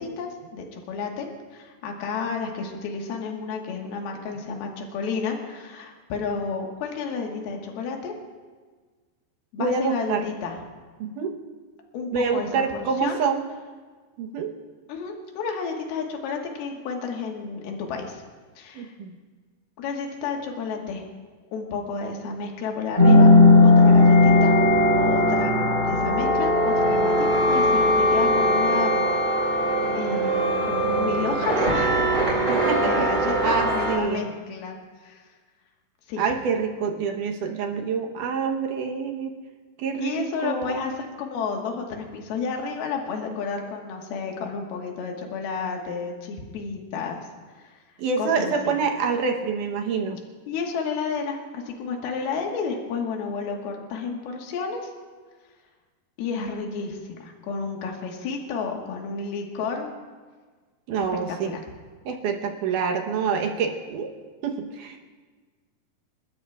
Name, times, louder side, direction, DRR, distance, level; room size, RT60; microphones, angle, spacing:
voice 1, 0.0-8.1 9.5-10.6 11.9-13.2 14.9-18.2 18.6-18.9 19.8-21.0 21.5-23.3 23.6-24.6 25.0-29.4 30.0-32.2 32.8-34.8 35.0-35.2 36.1-36.3 40.0-47.3 47.5-47.8 48.2-48.8 50.5-54.9 56.2-59.9 61.3-61.6, left 5 dB, 75° left, 1 dB, 3.3 m, -31 dB
voice 2, 9.6-10.2 11.0-11.3 12.1-13.4 14.2-14.5 18.8-19.1 32.5-33.1 33.4-34.3 36.2-39.3 39.8-40.8 48.0-50.2 60.9-61.5 62.1-64.1 64.4-65.1, right 5 dB, 70° right, 3 dB, 2.2 m, -26 dB
sound 1, 23.0-34.0, left 1 dB, 25° right, 3.4 m, -18 dB
29.0 x 13.0 x 2.4 m, 1.4 s
omnidirectional pair, 4.5 m